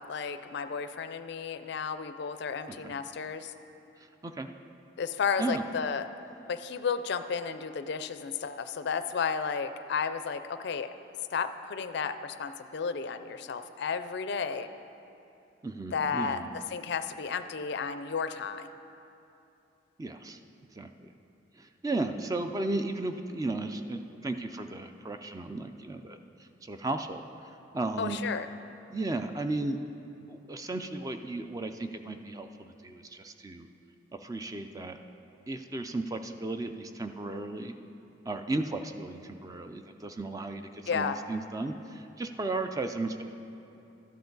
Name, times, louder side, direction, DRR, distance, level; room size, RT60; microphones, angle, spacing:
voice 1, 0.0-3.5 5.0-6.1 6.5-10.9 11.3-14.7 15.9-16.4 16.7-18.7 28.0-28.5 40.9-41.2, left 6 dB, 60° left, 10 dB, 0.4 m, -33 dB
voice 2, 15.6-16.5 20.0-20.4 20.7-21.1 21.6-26.2 26.6-27.2 27.7-28.2 28.9-29.8 30.3-33.7 34.2-35.0 35.5-37.7 38.3-43.2, right 2 dB, 20° right, 7 dB, 0.4 m, -35 dB
12.5 x 9.3 x 3.9 m, 2.8 s
head